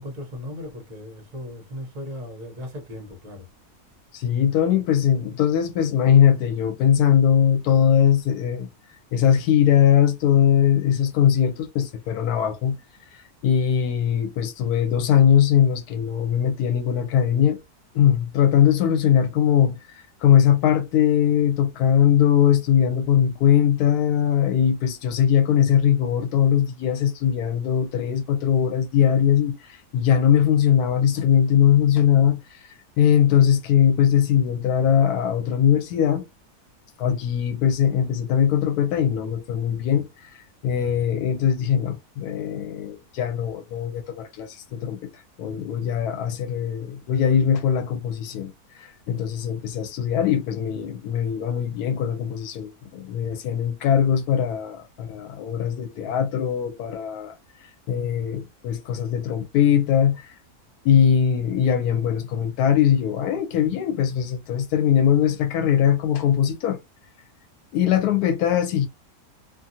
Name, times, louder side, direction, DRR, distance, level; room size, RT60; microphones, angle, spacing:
voice 1, 0.0-3.4, left 1 dB, 40° right, 0.8 m, -37 dB
voice 2, 4.1-8.7 9.1-12.8 13.1-17.6 17.9-32.7 33.0-36.3 37.0-57.4 57.6-60.3 60.8-66.8 67.7-68.9, left 9 dB, 85° left, 1.1 m, -21 dB
2.6 x 2.5 x 2.6 m
omnidirectional pair, 1.6 m